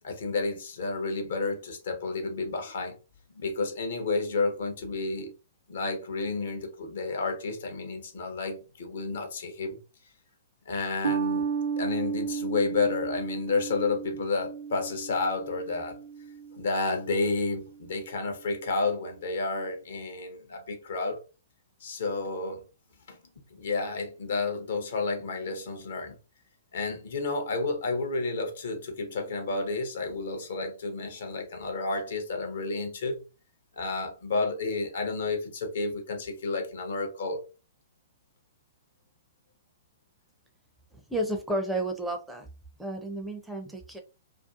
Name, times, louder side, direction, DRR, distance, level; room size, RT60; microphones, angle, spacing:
voice 1, 0.0-3.0 3.3-5.3 5.7-9.8 10.7-11.5 11.8-16.0 16.5-21.2 21.8-22.6 23.1-23.2 23.6-26.2 26.7-33.2 33.8-37.4, left 3 dB, 60° left, 0.7 m, -31 dB
sound 1, 11.0-17.8, right 6 dB, 65° right, 0.5 m, -34 dB
voice 2, 40.9-42.5 42.8-44.0, right 1 dB, 5° right, 0.4 m, -32 dB
2.5 x 2.3 x 2.3 m
figure-of-eight pair, 115°, 0 cm